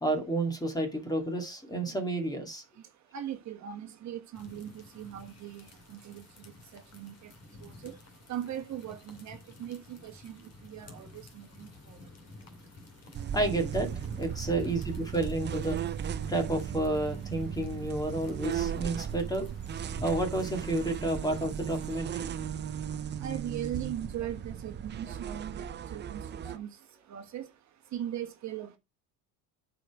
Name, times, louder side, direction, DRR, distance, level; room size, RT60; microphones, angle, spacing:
voice 1, 0.0-2.6 13.3-15.8 16.3-19.5 20.0-22.3, right 2 dB, 10° left, 2.1 m, -31 dB
voice 2, 3.1-6.2 6.7-7.1 7.8-8.0 8.3-10.4 10.6-11.1 11.3-11.7 23.2-26.2 26.5-26.7 27.1-27.5 27.9-28.8, right 11 dB, 45° right, 1.4 m, -39 dB
sound 1, 4.3-22.0, left 2 dB, 40° left, 2.3 m, -51 dB
sound 2, 13.1-26.6, right 8 dB, 25° right, 0.5 m, -36 dB
9.0 x 5.1 x 4.7 m
cardioid pair, 130°, 40 cm